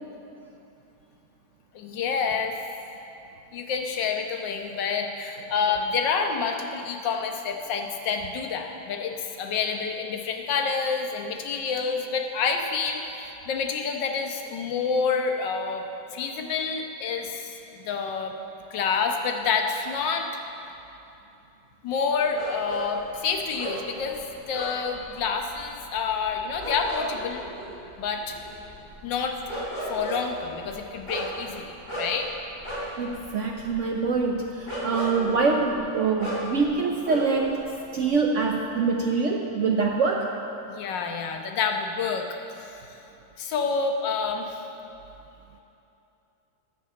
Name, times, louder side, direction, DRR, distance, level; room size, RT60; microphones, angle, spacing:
voice 1, 1.7-2.5 3.5-15.8 16.1-17.6 17.8-18.3 18.7-20.3 21.8-24.2 24.5-27.4 28.0-28.4 29.0-29.4 29.9-32.3 40.7-42.3 42.6-42.8 43.4-44.6, left 5 dB, 90° left, 4 dB, 1.6 m, -28 dB
sound 1, 22.3-37.6 37.8-38.6, right 1 dB, 25° left, 3.4 m, -36 dB
voice 2, 33.0-37.7 37.9-40.3, right 4 dB, 65° right, 2 dB, 0.7 m, -25 dB
10.0 x 6.8 x 7.6 m, 2.8 s
omnidirectional pair, 1.9 m